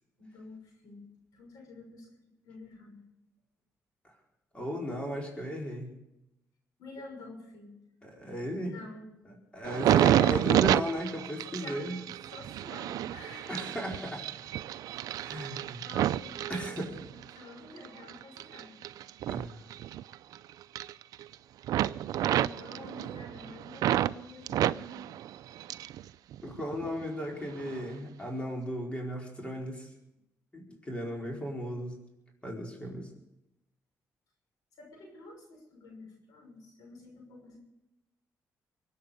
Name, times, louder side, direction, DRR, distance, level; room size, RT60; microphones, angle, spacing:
voice 1, 0.2-1.0 1.3-2.1 2.4-3.0 6.8-7.7 8.6-9.1 9.8-10.4 11.5-13.7 15.8-16.6 16.8-18.8 22.3-25.0 34.8-37.6, left 2 dB, 85° left, 1 dB, 6.2 m, -48 dB
voice 2, 4.5-6.0 8.0-8.7 9.2-12.0 13.5-14.3 15.2-15.8 16.5-16.9 19.3-19.6 26.4-29.9 30.5-32.0 32.4-33.1, equal, 20° left, -1 dB, 4.8 m, -36 dB
sound 1, 9.6-17.3 17.8-20.4 20.6-21.3 21.6-24.1 24.5-26.0 26.3-27.0 27.6-27.8, right 12 dB, 80° right, 0.5 m, -30 dB
23.5 x 8.8 x 6.7 m, 0.89 s
cardioid pair, 90°, 6 cm